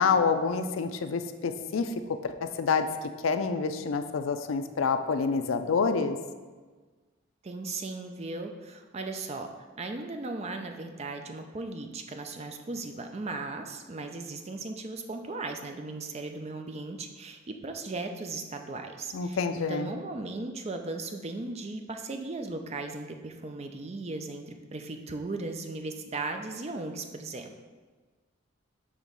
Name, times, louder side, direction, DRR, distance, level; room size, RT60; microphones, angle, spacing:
voice 1, 0.0-1.9 2.2-2.9 3.2-6.2 19.1-19.9, left 5 dB, 80° left, 8 dB, 0.4 m, -27 dB
voice 2, 7.4-9.5 9.8-27.5, right 3 dB, 30° right, 5 dB, 0.4 m, -37 dB
6.4 x 3.0 x 5.2 m, 1.4 s
head